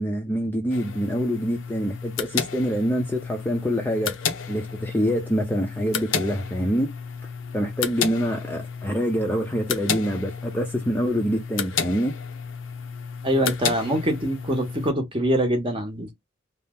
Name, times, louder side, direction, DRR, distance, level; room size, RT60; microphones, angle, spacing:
voice 1, 0.0-6.9 7.5-12.1, equal, 10° left, 0.5 m, -26 dB
sound 1, 0.7-14.9, left 7 dB, 85° left, 0.6 m, -32 dB
voice 2, 13.2-16.1, equal, 25° right, 0.8 m, -24 dB
2.8 x 2.0 x 3.4 m
head